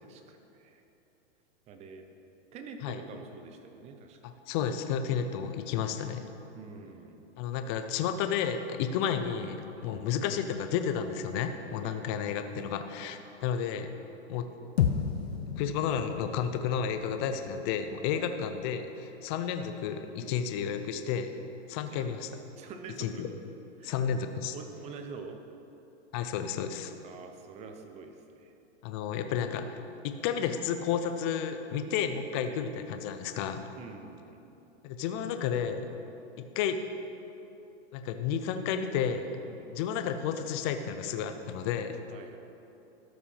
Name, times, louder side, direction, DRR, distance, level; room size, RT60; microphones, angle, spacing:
voice 1, 0.0-0.8 1.7-2.0 2.5-4.4 6.5-7.3 9.8-10.2 11.8-12.2 12.5-12.7 13.0-13.1 17.0-17.3 18.1-18.3 20.2-20.4 22.0-22.1 22.5-23.3 23.8-24.0 24.5-25.4 27.0-28.5 32.4-32.7 33.8-34.6 39.5-39.7 42.1-42.4, right 5 dB, 20° right, 6 dB, 0.6 m, -47 dB
voice 2, 4.2-6.2 7.4-13.9 14.3-14.5 15.6-21.3 21.7-22.3 23.0-23.3 23.8-24.5 26.1-26.9 28.8-29.8 30.0-33.6 34.8-35.9 36.4-36.8 37.9-39.3 39.7-42.0, left 8 dB, 25° left, 8 dB, 0.4 m, -32 dB
sound 1, 14.8-19.1, left 8 dB, 60° left, 0.8 m, -34 dB
13.0 x 5.7 x 5.5 m, 2.9 s
hypercardioid pair, 135°, 35 cm